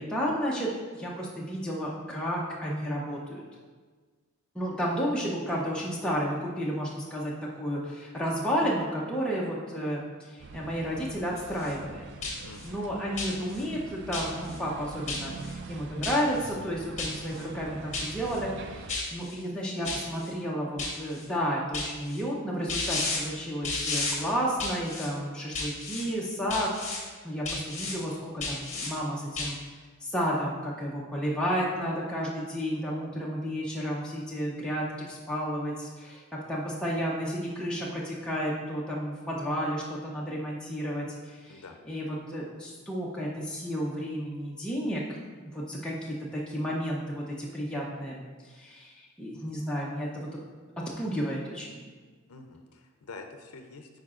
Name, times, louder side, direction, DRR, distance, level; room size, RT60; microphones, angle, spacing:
voice 1, 0.0-3.4 4.5-12.0 12.6-29.6 30.0-36.2 36.5-45.0 45.5-48.2 48.5-50.1 51.0-51.8, equal, 5° left, -5 dB, 0.6 m, -32 dB
sound 1, 10.4-18.9, right 3 dB, 50° right, 0.3 m, -44 dB
sound 2, 11.4-11.7 12.2-12.7 13.2-13.6 14.1-14.6 15.1-15.5 16.0-16.5 17.0-17.4 17.9-18.4 18.9-19.3 19.8-20.3 20.8-21.2 21.7-22.2 22.7-23.2 23.6-24.2 24.6-25.1 25.5-26.0 26.5-27.0 27.4-27.9 28.4-28.9 29.3-29.5, left 3 dB, 30° left, 1.1 m, -33 dB
voice 2, 12.4-12.8 41.5-41.8 52.3-53.9, left 3 dB, 80° left, 5 dB, 0.5 m, -46 dB
9.1 x 4.7 x 2.4 m, 1.4 s
head